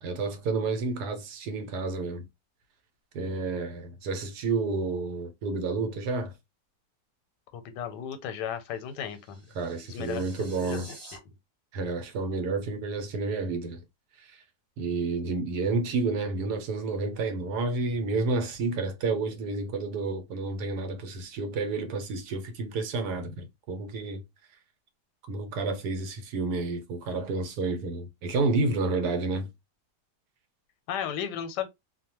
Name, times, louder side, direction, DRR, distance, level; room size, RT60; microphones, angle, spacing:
voice 1, 0.0-2.2 3.1-6.3 9.5-10.9 11.7-13.8 14.2-14.4 14.8-24.2 25.2-29.5, right 3 dB, 75° right, 1.2 m, -30 dB
voice 2, 7.5-9.5 9.8-10.8 30.9-31.7, left 9 dB, 85° left, 1.2 m, -35 dB
sound 1, 8.5-11.2, right 2 dB, 30° right, 0.8 m, -50 dB
2.8 x 2.1 x 2.9 m
omnidirectional pair, 1.8 m